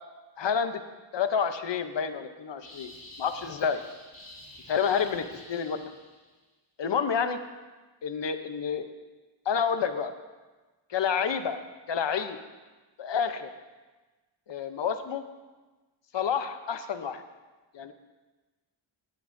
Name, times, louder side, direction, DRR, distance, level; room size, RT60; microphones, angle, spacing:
voice 1, 0.4-0.8 1.1-2.9 3.2-3.8 4.7-5.8 6.8-7.4 8.0-8.9 9.5-10.1 10.9-11.6 11.9-12.4 13.0-13.5 14.5-15.2 16.1-17.2 17.7-17.9, left 7 dB, 60° left, 9 dB, 0.8 m, -29 dB
sound 1, 2.6-6.3, left 1 dB, 15° left, 3.1 m, -49 dB
17.5 x 9.9 x 2.6 m, 1.2 s
wide cardioid pair, 155°, 49 cm